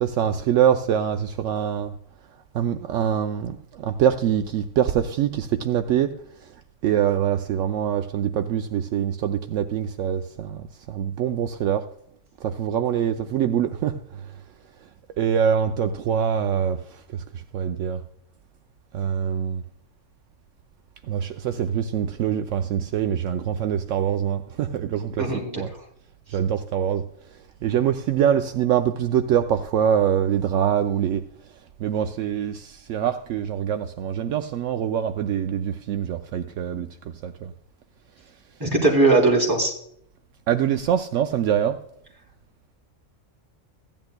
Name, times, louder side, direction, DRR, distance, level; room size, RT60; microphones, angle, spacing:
voice 1, 0.0-1.9 2.5-6.1 6.8-11.9 12.4-14.0 15.2-16.8 17.5-18.0 18.9-19.6 21.1-25.2 25.6-25.7 26.3-27.0 27.6-31.2 31.8-36.9 37.2-37.5 40.5-41.8, right 9 dB, 75° right, 0.9 m, -24 dB
voice 2, 25.2-25.6 38.6-39.7, right 3 dB, 15° right, 3.1 m, -19 dB
15.5 x 10.5 x 2.2 m
omnidirectional pair, 1.3 m